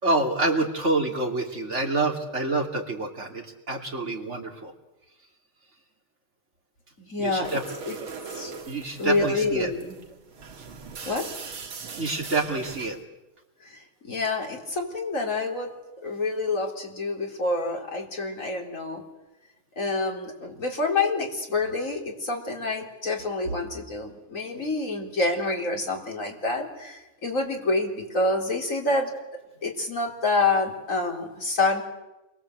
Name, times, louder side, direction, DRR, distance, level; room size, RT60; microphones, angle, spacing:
voice 1, 0.0-4.7 7.2-7.6 8.7-9.7 12.0-13.0, right 2 dB, 35° right, 2 dB, 3.2 m, -27 dB
voice 2, 7.0-7.6 7.9-8.0 8.3-8.5 9.0-10.0 11.1-11.3 13.6-15.7 16.0-19.0 19.8-29.1 29.6-31.8, left 3 dB, 40° left, 1 dB, 4.2 m, -27 dB
sound 1, 7.4-13.0, right 5 dB, 80° right, 2.9 m, -40 dB
28.0 x 23.5 x 8.0 m, 1.0 s
omnidirectional pair, 2.2 m